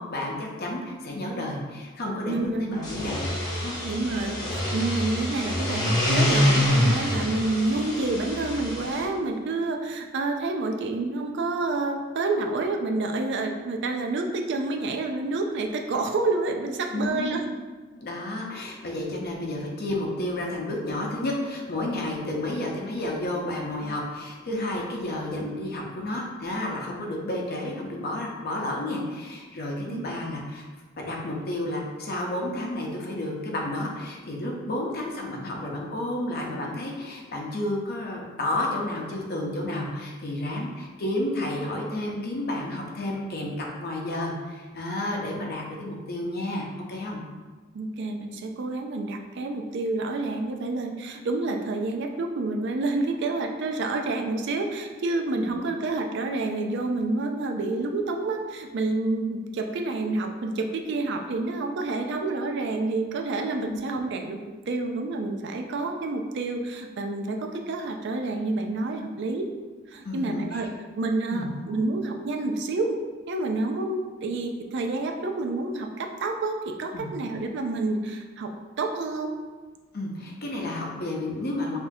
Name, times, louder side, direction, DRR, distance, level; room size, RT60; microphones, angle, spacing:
voice 1, 0.0-3.3 3.5-3.8 16.9-17.4 18.0-30.7 31.0-47.2 55.3-55.6 63.6-63.8 70.0-70.6 71.3-71.5 76.9-77.1 79.9-81.8, left 1 dB, 50° left, -1 dB, 0.7 m, -31 dB
voice 2, 2.3-2.8 3.8-17.4 29.9-30.2 47.7-64.4 64.7-69.5 69.9-70.7 71.0-73.0 73.3-78.5 78.8-79.3, right 2 dB, 60° right, 4 dB, 0.4 m, -28 dB
sound 1, 2.8-9.0, left 1 dB, 20° left, 0.9 m, -26 dB
5.9 x 2.7 x 2.7 m, 1.3 s
head